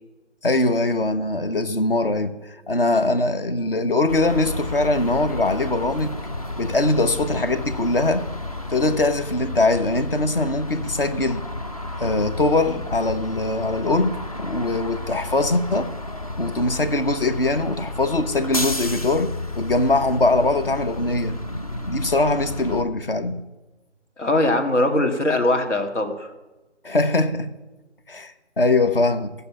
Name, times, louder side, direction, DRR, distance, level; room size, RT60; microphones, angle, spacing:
voice 1, 0.4-2.4 2.7-6.2 6.6-8.2 8.7-11.4 12.0-15.9 16.4-21.4 21.9-23.4 26.8-27.5 28.1-29.3, left 2 dB, 50° left, 1.1 m, -22 dB
sound 1, 4.1-22.8, left 2 dB, 30° left, 0.6 m, -32 dB
voice 2, 24.2-26.3, left 1 dB, 75° left, 2.3 m, -21 dB
15.0 x 6.8 x 8.5 m
figure-of-eight pair, 155°, 36 cm